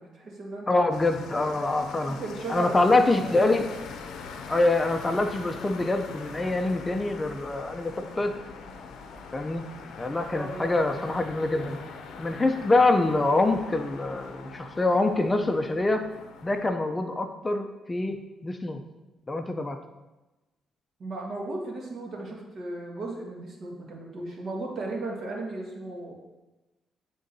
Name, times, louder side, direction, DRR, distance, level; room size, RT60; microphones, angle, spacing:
voice 1, 0.0-0.9 2.1-3.5 10.3-11.2 21.0-26.1, right 2 dB, 55° right, -1 dB, 1.5 m, -36 dB
voice 2, 0.7-2.2 2.5-3.7 4.5-8.3 9.3-9.6 10.0-11.8 12.2-16.1 16.4-18.8 19.3-19.8, left 2 dB, 20° left, 6 dB, 0.4 m, -25 dB
sound 1, 0.9-16.7, left 5 dB, 80° left, 0.6 m, -42 dB
9.6 x 3.7 x 2.7 m, 1.1 s
cardioid pair, 90°, 0 cm